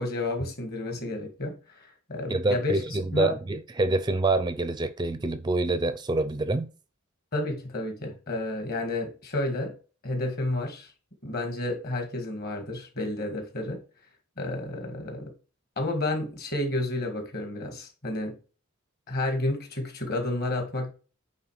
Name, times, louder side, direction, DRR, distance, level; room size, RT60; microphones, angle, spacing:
voice 1, 0.0-2.8 3.1-3.4 7.3-9.8 10.0-10.9 11.2-13.8 14.4-15.3 15.8-18.4 19.1-20.9, left 2 dB, 45° left, 1.9 m, -31 dB
voice 2, 2.3-6.7, right 2 dB, 20° right, 0.4 m, -26 dB
8.7 x 3.6 x 4.7 m
head